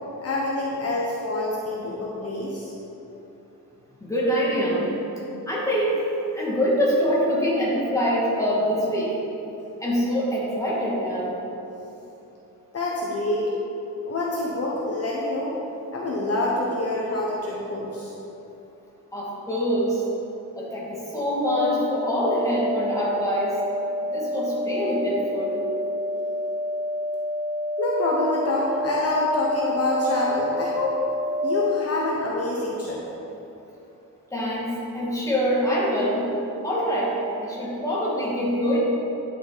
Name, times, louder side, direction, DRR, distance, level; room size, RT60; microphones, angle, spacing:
voice 1, 0.2-2.7 12.7-13.5 14.1-15.5 15.9-18.1 27.8-31.0 31.4-33.0, left 2 dB, 45° left, -4 dB, 1.2 m, -26 dB
voice 2, 4.0-5.0 5.5-6.0 6.3-9.1 9.8-11.4 19.1-20.0 20.6-23.6 24.1-25.6 34.3-34.7 34.9-36.2 36.6-37.1 37.4-38.8, equal, 10° left, -6 dB, 2.4 m, -24 dB
sound 1, 21.4-31.4, left 1 dB, 25° right, 1.8 m, -28 dB
10.0 x 7.8 x 4.2 m, 3.0 s
wide cardioid pair, 135°, 33 cm